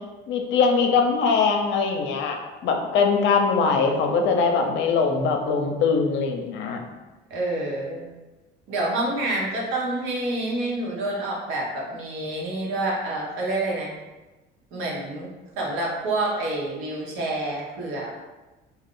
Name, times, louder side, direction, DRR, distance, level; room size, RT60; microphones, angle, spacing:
voice 1, 0.3-2.4 2.6-6.8, left 5 dB, 60° left, 3 dB, 0.6 m, -22 dB
voice 2, 7.3-8.1 8.7-13.9 14.7-15.3 15.6-18.1, right 2 dB, 75° right, -3 dB, 1.0 m, -28 dB
2.4 x 2.2 x 3.6 m, 1.1 s
supercardioid pair, 85°, 21 cm